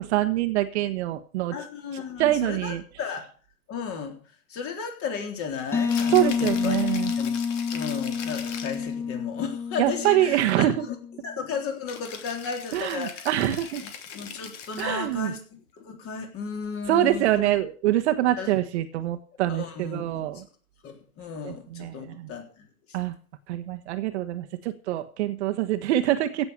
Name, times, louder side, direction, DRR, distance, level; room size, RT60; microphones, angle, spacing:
voice 1, 0.0-1.5 2.2-2.8 6.1-7.1 9.8-10.9 12.7-13.8 14.8-15.3 16.9-20.4 21.4-22.3 22.9-23.2 23.5-26.5, right 13 dB, 50° right, 8 dB, 1.4 m, -25 dB
voice 2, 1.5-3.3 3.7-4.2 4.5-7.3 7.7-11.0 11.2-13.3 13.6-17.5 18.4-18.5 19.5-20.4 20.8-23.0, left 6 dB, 30° left, 4 dB, 3.8 m, -35 dB
sound 1, 5.7-11.3, left 6 dB, 5° left, 0.6 m, -29 dB
Rattle (instrument), 5.8-8.9 11.9-15.1, left 7 dB, 55° left, 3.0 m, -40 dB
16.5 x 7.0 x 6.8 m, 0.39 s
hypercardioid pair, 115°, 44 cm